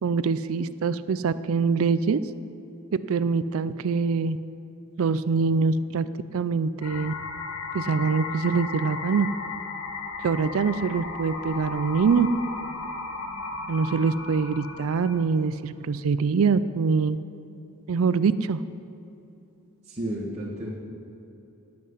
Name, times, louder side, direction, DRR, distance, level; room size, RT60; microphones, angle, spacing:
voice 1, 0.0-2.2 3.1-4.4 5.0-6.1 6.3-7.1 7.7-9.3 10.2-12.3 13.7-17.2 17.9-18.6, right 5 dB, 70° right, 14 dB, 0.4 m, -24 dB
sound 1, 6.8-15.2, left 4 dB, 75° left, 1.4 m, -35 dB
voice 2, 19.8-20.7, right 1 dB, 30° right, -7 dB, 1.7 m, -32 dB
18.0 x 7.7 x 5.6 m, 2.9 s
head